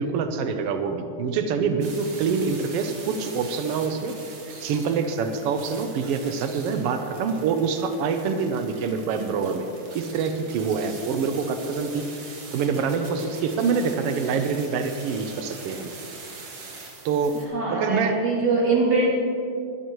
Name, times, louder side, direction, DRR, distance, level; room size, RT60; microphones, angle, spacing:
voice 1, 0.0-4.1 4.6-9.7 9.9-12.0 12.5-15.9 17.0-17.4 17.7-18.2, right 5 dB, 85° right, 7 dB, 1.3 m, -25 dB
sound 1, 1.8-17.5, right 3 dB, 55° right, 2.8 m, -43 dB
voice 2, 17.5-19.1, right 3 dB, 35° right, -4 dB, 3.1 m, -22 dB
21.0 x 12.5 x 3.1 m, 2.6 s
omnidirectional pair, 3.6 m